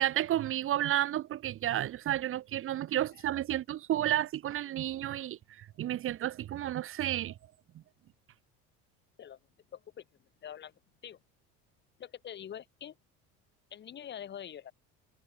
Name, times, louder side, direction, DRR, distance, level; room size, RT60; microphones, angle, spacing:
voice 1, 0.0-7.3, right 12 dB, 45° right, 2.4 m, -31 dB
voice 2, 9.7-10.0 10.4-10.7 11.0-11.2 12.0-13.0 13.7-14.7, left 9 dB, 40° left, 4.6 m, -44 dB
cardioid pair, 140°, 29 cm